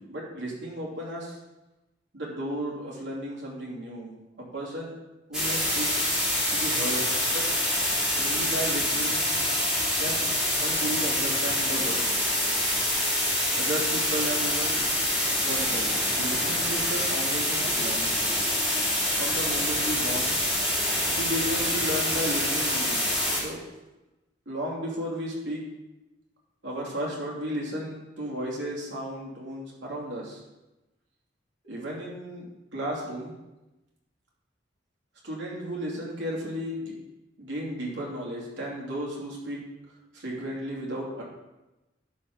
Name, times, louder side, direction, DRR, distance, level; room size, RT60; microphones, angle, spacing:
voice 1, 0.0-1.4 2.1-4.1 4.4-4.9 5.3-5.9 6.5-7.0 7.3-7.4 8.1-9.2 10.0-10.3 10.6-12.1 13.5-14.8 15.4-18.2 19.2-20.4 21.2-23.1 23.3-23.6 24.5-25.6 26.6-30.4 31.6-32.4 32.7-33.3 35.2-36.9 37.4-39.6 40.1-41.2, equal, 80° right, -4 dB, 2.9 m, -34 dB
sound 1, 5.3-23.4, left 1 dB, 5° right, 2.3 m, -26 dB
11.5 x 4.4 x 5.4 m, 1.0 s
head